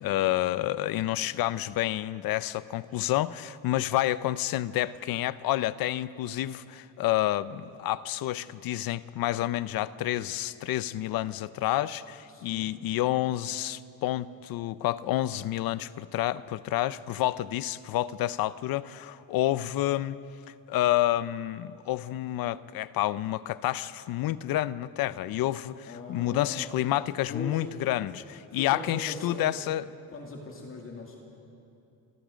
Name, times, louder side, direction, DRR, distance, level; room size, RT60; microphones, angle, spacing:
voice 1, 0.0-20.2 20.7-29.9, left 14 dB, 70° left, 16 dB, 0.7 m, -29 dB
voice 2, 12.3-12.8 25.9-26.7 27.3-27.6 28.5-29.5 30.1-31.2, left 3 dB, 35° left, 0 dB, 2.5 m, -40 dB
30.0 x 24.5 x 5.1 m, 2.7 s
cardioid pair, 170°, 37 cm